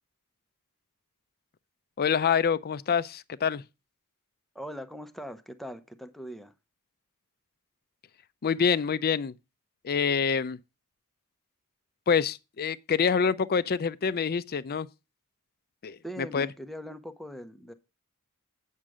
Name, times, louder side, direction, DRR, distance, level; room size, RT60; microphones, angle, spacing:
voice 1, 2.0-3.6 8.4-9.3 9.8-10.6 12.1-14.9 15.8-16.5, left 6 dB, 45° left, 0.5 m, -26 dB
voice 2, 4.5-6.5 16.0-17.7, equal, ahead, 0.8 m, -41 dB
9.1 x 6.5 x 4.8 m
head